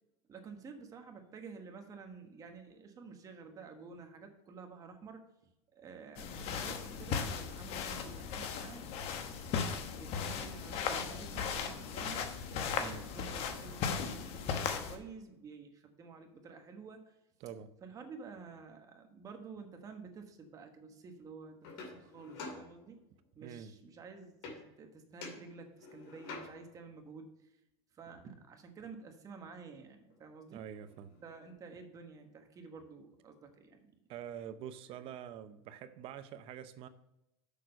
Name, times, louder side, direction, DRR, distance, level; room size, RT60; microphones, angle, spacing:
voice 1, 0.3-5.2 5.7-8.9 9.5-17.2 17.8-23.0 23.3-27.5 27.9-30.6 31.2-33.9, right 5 dB, 25° right, 5 dB, 1.3 m, -51 dB
sound 1, 6.2-15.0, left 6 dB, 45° left, 1.1 m, -37 dB
sound 2, 21.6-23.3 24.4-24.9 25.2-26.8 30.1-30.2 30.5-31.5, left 3 dB, 65° left, 2.3 m, -49 dB
voice 2, 23.4-23.7 30.5-31.1 34.1-36.9, right 9 dB, 40° right, 11 dB, 0.7 m, -46 dB
6.6 x 6.2 x 5.3 m, 0.88 s
supercardioid pair, 140°, 14 cm